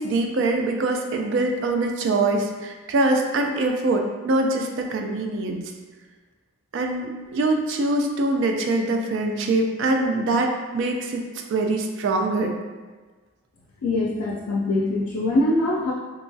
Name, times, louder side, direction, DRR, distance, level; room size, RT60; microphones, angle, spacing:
voice 1, 0.0-5.6 6.7-11.2 11.5-12.6, right 2 dB, 55° right, 3 dB, 0.3 m, -23 dB
voice 2, 13.8-15.9, left 2 dB, 85° left, -2 dB, 0.4 m, -23 dB
2.9 x 2.3 x 2.6 m, 1.3 s
head